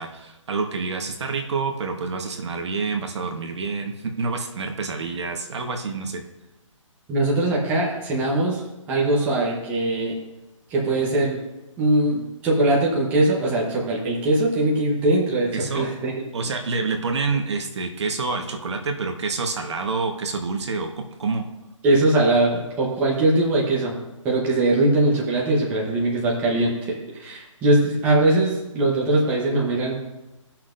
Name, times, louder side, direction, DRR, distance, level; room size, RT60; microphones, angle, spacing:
voice 1, 0.0-6.2 15.5-15.9 16.3-21.5, right 4 dB, 55° right, 4 dB, 1.2 m, -27 dB
voice 2, 7.1-8.6 8.9-10.1 10.7-11.4 11.8-16.2 21.8-24.0 24.2-29.9, right 2 dB, 10° right, -4 dB, 1.0 m, -21 dB
16.5 x 5.9 x 2.6 m, 1.0 s
hypercardioid pair, 165°, 17 cm